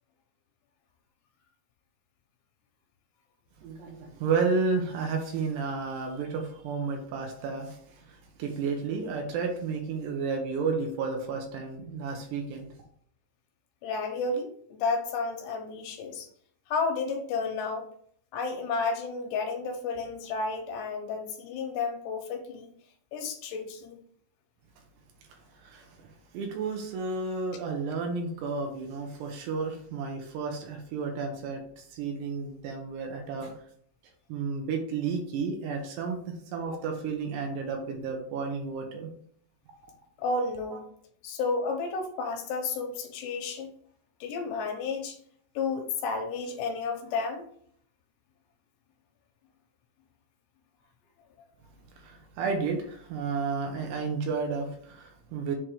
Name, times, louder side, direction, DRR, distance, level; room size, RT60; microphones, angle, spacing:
voice 1, 3.6-12.7 25.6-33.5 34.3-39.1 52.0-55.6, right 4 dB, 75° right, 2 dB, 2.9 m, -32 dB
voice 2, 13.8-16.3 16.7-17.9 18.3-22.7 23.1-24.0 36.7-36.8 40.2-40.8 41.2-43.7 44.2-45.2 45.6-47.4, left 4 dB, 80° left, 3 dB, 2.9 m, -32 dB
7.5 x 3.2 x 4.7 m, 0.62 s
omnidirectional pair, 5.3 m